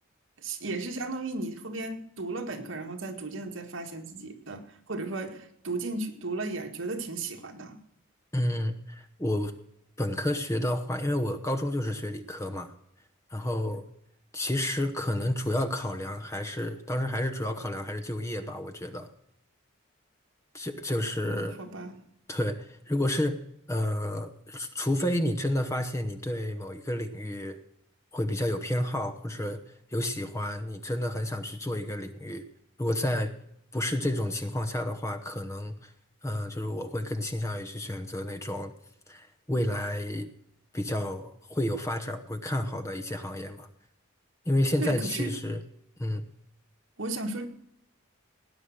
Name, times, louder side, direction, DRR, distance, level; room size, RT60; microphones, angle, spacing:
voice 1, 0.4-7.8 21.2-22.0 44.8-45.3 47.0-47.5, right 2 dB, 70° right, 4 dB, 1.9 m, -35 dB
voice 2, 8.3-9.5 10.0-12.7 13.3-13.9 14.3-19.1 20.5-21.6 22.3-23.4 23.7-27.6 28.1-29.6 29.9-32.4 32.8-33.3 33.7-35.9 36.2-38.7 39.1-40.3 40.7-43.7 44.5-45.6 46.0-46.2, left 1 dB, 15° left, 8 dB, 1.0 m, -30 dB
18.0 x 9.5 x 6.5 m, 0.74 s
head